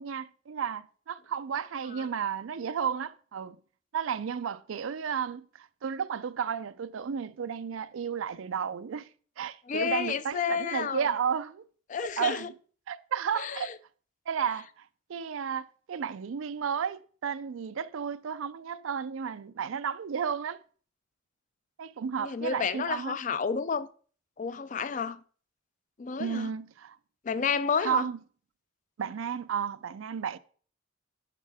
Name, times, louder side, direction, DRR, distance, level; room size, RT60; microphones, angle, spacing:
voice 1, 0.0-3.6 3.9-9.1 9.4-11.6 12.2-12.5 12.9-13.7 14.3-14.8 15.1-20.6 21.8-23.2 26.2-27.0 27.8-28.2 29.0-30.4, right 7 dB, 85° right, 0.4 m, -33 dB
voice 2, 9.7-11.1 11.9-12.5 13.4-13.7 22.2-23.9 24.4-25.2 26.0-26.5 27.2-28.1, left 6 dB, 40° left, 0.4 m, -31 dB
10.5 x 4.3 x 3.5 m
head